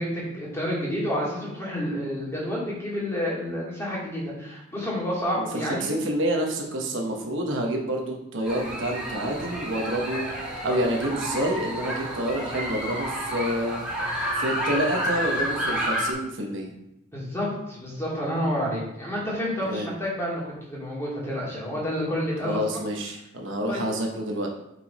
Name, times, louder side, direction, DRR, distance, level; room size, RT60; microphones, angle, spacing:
voice 1, 0.0-5.9 17.1-22.8 23.7-23.8, equal, 15° left, -5 dB, 2.2 m, -29 dB
voice 2, 5.4-10.3 10.6-13.8 14.4-16.7 19.6-19.9 22.4-24.5, right 1 dB, 65° right, 1 dB, 1.2 m, -28 dB
sound 1, 8.4-16.1, equal, 5° right, 1.7 m, -30 dB
6.1 x 5.8 x 4.2 m, 0.85 s
head